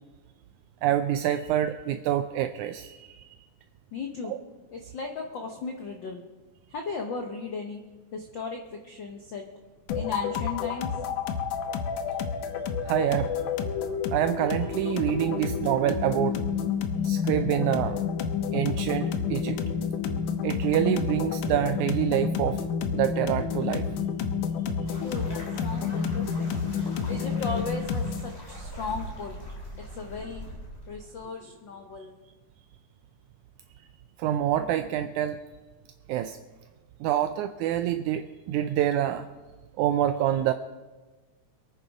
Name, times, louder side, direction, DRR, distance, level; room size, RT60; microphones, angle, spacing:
voice 1, 0.8-3.3 4.2-4.4 12.8-13.3 14.1-16.4 17.0-18.0 18.5-19.6 20.4-22.6 22.9-23.9 34.2-35.4 36.1-36.4 37.0-39.3 39.8-40.5, right 11 dB, 80° right, 9 dB, 1.9 m, -26 dB
voice 2, 3.9-4.3 4.7-6.2 6.7-7.8 8.1-9.4 9.9-10.9 24.4-24.6 25.0-26.6 27.1-29.4 29.8-30.4 30.9-32.1, left 4 dB, 70° left, 4 dB, 1.1 m, -36 dB
sound 1, 9.9-28.3, left 6 dB, 90° left, 2.5 m, -29 dB
sound 2, 24.9-31.3, equal, 20° left, 2.8 m, -43 dB
23.0 x 9.3 x 4.9 m, 1.3 s
omnidirectional pair, 3.5 m